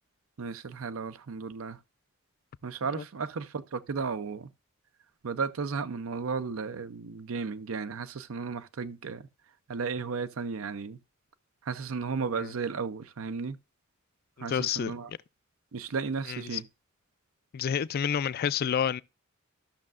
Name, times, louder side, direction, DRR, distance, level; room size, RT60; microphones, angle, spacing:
voice 1, 0.4-1.8 2.6-4.5 5.2-9.3 9.7-11.0 11.6-13.6 14.4-15.1 15.7-16.6, right 5 dB, 85° right, 0.6 m, -34 dB
voice 2, 14.4-15.2 16.3-16.6 17.5-19.0, left 8 dB, 50° left, 0.3 m, -29 dB
13.0 x 6.3 x 2.4 m
head